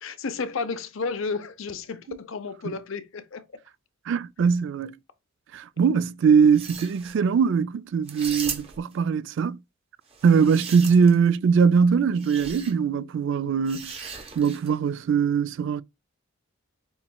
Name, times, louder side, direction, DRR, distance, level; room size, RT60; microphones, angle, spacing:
voice 1, 0.0-3.6, left 4 dB, 65° left, 0.6 m, -32 dB
voice 2, 4.1-4.9 5.5-9.6 10.2-13.9 14.4-15.8, right 6 dB, 60° right, 0.3 m, -21 dB
sound 1, 6.4-7.2 8.1-8.9 10.1-11.3 12.2-12.7 13.7-14.8, right 6 dB, 30° right, 1.0 m, -37 dB
7.0 x 3.0 x 2.2 m
head